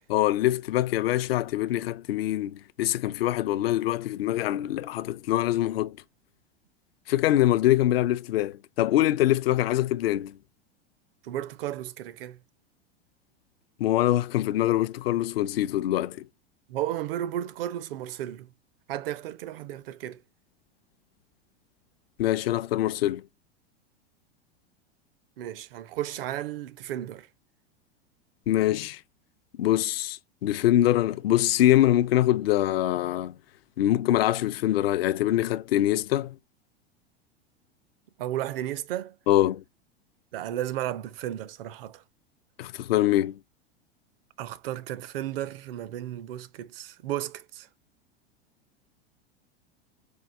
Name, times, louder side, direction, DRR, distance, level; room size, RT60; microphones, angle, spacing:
voice 1, 0.1-6.0 7.1-10.4 13.8-16.3 22.2-23.2 28.5-29.0 29.6-33.3 33.8-36.4 39.3-39.6 42.6-43.4, left 14 dB, 65° left, 0.5 m, -24 dB
voice 2, 11.2-12.4 16.7-18.5 18.9-20.2 25.4-27.3 38.2-39.2 40.3-42.0 44.4-47.7, right 12 dB, 60° right, 0.6 m, -33 dB
4.7 x 2.4 x 3.2 m
hypercardioid pair, 90°, 32 cm